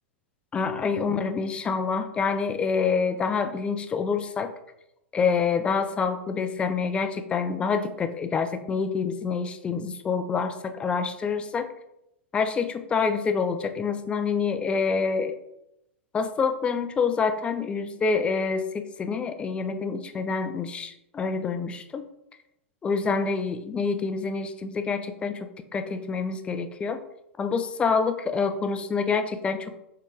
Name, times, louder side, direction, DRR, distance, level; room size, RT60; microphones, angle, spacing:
voice 1, 0.5-4.5 5.1-11.7 12.3-15.4 16.1-22.1 22.8-27.0 27.4-29.8, left 5 dB, 15° left, 8 dB, 0.3 m, -27 dB
3.9 x 3.2 x 3.4 m, 0.84 s
figure-of-eight pair, 95°, 7 cm